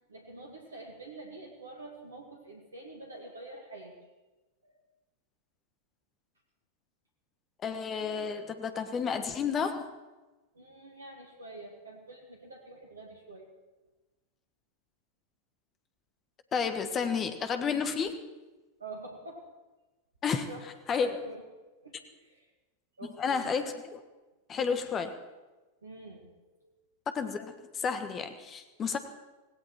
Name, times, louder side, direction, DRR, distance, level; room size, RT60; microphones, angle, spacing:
voice 1, 0.1-3.9 4.6-4.8 10.5-13.5 18.8-19.4 20.2-20.7 21.0-21.4 21.8-22.5 23.0-23.6 25.8-26.3 26.6-26.7, right 2 dB, 75° right, 2 dB, 2.1 m, -47 dB
voice 2, 7.6-9.9 16.5-18.1 20.2-20.5 20.9-21.1 23.2-24.0 24.5-25.2 27.1-29.0, left 6 dB, 25° left, 9 dB, 1.4 m, -31 dB
17.5 x 17.0 x 4.5 m, 1.2 s
figure-of-eight pair, 90°, 0 cm